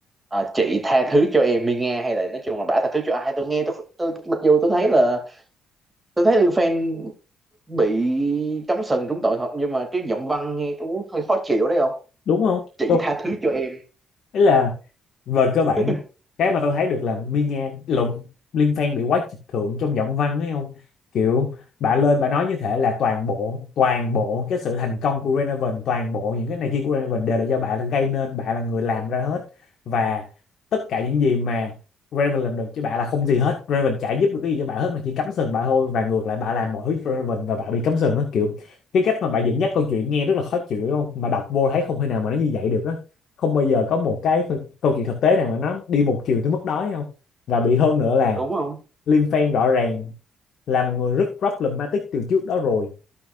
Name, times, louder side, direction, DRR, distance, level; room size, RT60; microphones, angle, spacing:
voice 1, 0.3-5.4 6.2-7.1 7.7-12.0 12.8-13.8 15.8-16.0 48.4-48.8, right 2 dB, 15° right, 2.6 m, -22 dB
voice 2, 12.3-12.6 12.9-13.0 14.3-14.8 15.3-16.0 16.4-18.3 18.5-19.3 19.5-20.7 21.1-21.5 21.8-29.4 29.9-30.3 30.7-31.7 32.1-43.0 43.4-47.1 47.5-48.4 49.1-50.1 50.7-52.9, left 5 dB, 65° left, 1.7 m, -22 dB
16.0 x 5.7 x 2.5 m
cardioid pair, 90°, 0 cm